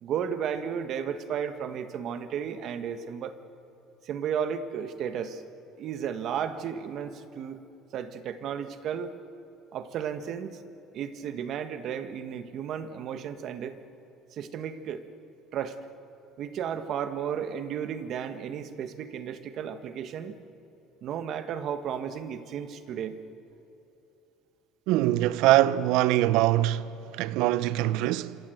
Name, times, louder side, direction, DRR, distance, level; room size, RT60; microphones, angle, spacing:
voice 1, 0.0-3.4 4.0-5.4 5.8-7.6 7.9-9.1 9.7-10.6 10.9-13.8 14.3-15.0 15.5-15.8 16.4-20.4 21.0-23.2, right 8 dB, 50° right, 1.5 m, -33 dB
voice 2, 24.9-28.4, right 14 dB, 80° right, 0.7 m, -23 dB
27.0 x 25.5 x 7.9 m
cardioid pair, 135°, 0 cm